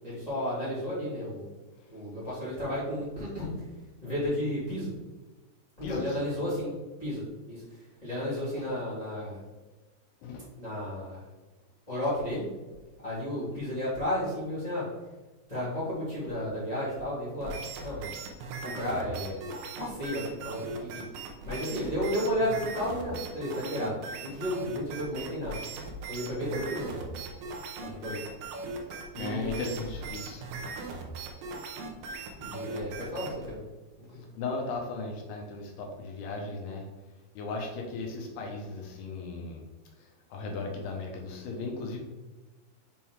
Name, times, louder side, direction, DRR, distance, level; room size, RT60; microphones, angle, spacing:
voice 1, 0.0-1.4 1.9-3.5 4.0-4.9 5.8-6.7 7.0-7.2 7.5-9.4 10.6-11.2 11.9-12.4 13.0-14.9 15.5-17.5 17.8-18.1 18.6-19.4 19.8-21.0 21.4-23.9 24.2-25.6 26.1-27.0 27.8-28.2 29.1-29.7 32.4-33.6 34.0-34.2, equal, 50° left, -10 dB, 0.4 m, -33 dB
voice 2, 5.8-6.6 8.6-8.7 10.2-10.5 29.1-30.4 34.4-36.9 37.4-39.6 40.0-42.0, left 3 dB, 75° left, 0 dB, 2.6 m, -36 dB
sound 1, 17.4-33.5, right 3 dB, 85° right, 1.9 m, -39 dB
7.1 x 3.8 x 4.6 m, 1.2 s
omnidirectional pair, 5.1 m